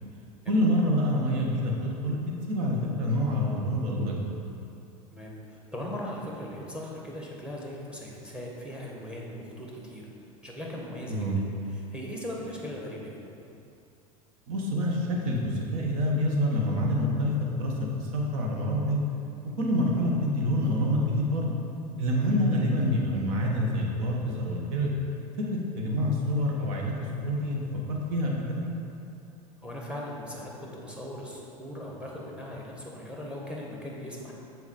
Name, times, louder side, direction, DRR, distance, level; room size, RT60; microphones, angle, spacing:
voice 1, 0.5-4.2 11.1-11.4 14.5-19.0 19.6-21.5 22.0-24.9 25.4-27.6 27.9-28.6, equal, 65° right, -1 dB, 1.3 m, -27 dB
voice 2, 5.1-10.1 10.4-11.3 11.9-13.2 22.3-22.4 26.0-26.1 29.6-34.3, left 1 dB, 5° right, -3 dB, 1.4 m, -39 dB
7.1 x 4.0 x 4.3 m, 2.7 s
hypercardioid pair, 90°, 19 cm